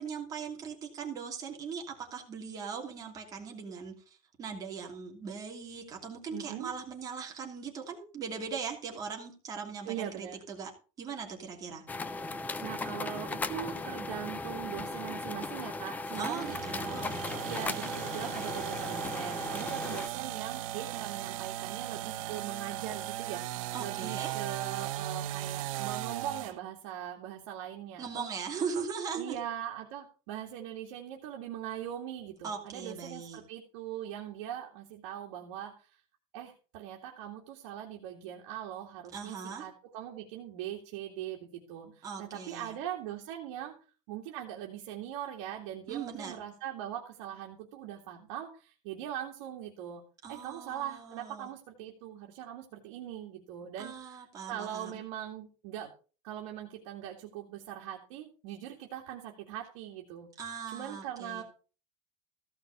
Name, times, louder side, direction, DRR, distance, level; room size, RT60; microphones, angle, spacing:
voice 1, 0.0-10.7 11.0-11.8 16.2-17.2 23.7-24.3 28.0-29.4 32.4-33.4 39.1-39.6 42.0-42.8 45.9-46.3 50.2-51.5 53.8-54.9 60.4-61.4, right 6 dB, 20° right, 1 dB, 2.6 m, -39 dB
voice 2, 6.3-6.7 9.8-10.4 12.6-17.0 17.4-28.3 29.1-36.0 36.3-43.8 44.1-55.9 56.2-60.3 60.7-61.4, right 10 dB, 60° right, 0 dB, 2.3 m, -41 dB
sound 1, 11.9-20.1, left 3 dB, 10° left, 0.5 m, -37 dB
sound 2, 16.3-26.6, right 14 dB, 90° right, 1.0 m, -37 dB
15.0 x 6.0 x 6.8 m, 0.36 s
cardioid pair, 180°, 17 cm